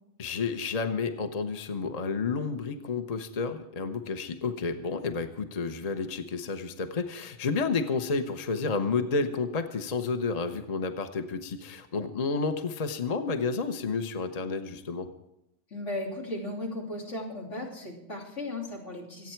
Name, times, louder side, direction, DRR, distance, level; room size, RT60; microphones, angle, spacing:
voice 1, 0.2-15.1, left 4 dB, 35° left, 8 dB, 0.9 m, -31 dB
voice 2, 15.7-19.3, left 1 dB, 85° left, -2 dB, 3.5 m, -36 dB
25.5 x 8.9 x 4.6 m, 0.86 s
omnidirectional pair, 1.2 m